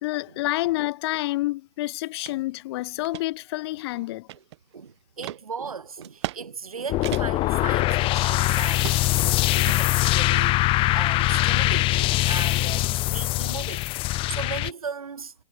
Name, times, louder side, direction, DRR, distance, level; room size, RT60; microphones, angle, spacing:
voice 1, 0.0-4.3, left 18 dB, 45° left, 1.4 m, -28 dB
sound 1, 2.3-2.4 2.8-3.3 3.8-4.7 5.2-5.4 6.0-6.4 6.7-6.8 7.0-7.5 7.9-8.5 8.8-9.2 9.7-10.5, right 15 dB, 50° right, 6.6 m, -36 dB
voice 2, 4.7-13.9 14.3-15.3, right 5 dB, 75° right, 3.3 m, -37 dB
sound 2, 6.9-14.7, left 18 dB, 30° left, 1.4 m, -22 dB
figure-of-eight pair, 110°, 19 cm